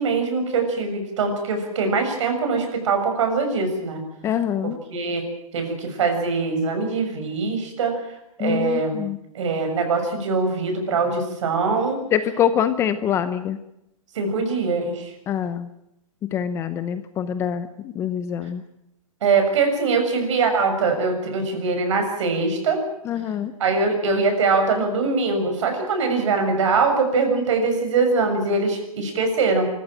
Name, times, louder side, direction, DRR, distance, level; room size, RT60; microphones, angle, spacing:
voice 1, 0.0-4.0 4.6-5.2 5.5-8.0 8.4-9.0 9.3-12.0 14.2-15.1 19.2-22.8 23.6-29.7, right 4 dB, 55° right, 5 dB, 6.9 m, -22 dB
voice 2, 4.2-4.8 8.4-9.2 12.1-13.6 15.3-15.7 16.3-18.6 23.1-23.5, left 9 dB, 15° left, 12 dB, 0.8 m, -24 dB
24.5 x 15.0 x 8.9 m, 0.82 s
hypercardioid pair, 160°, 18 cm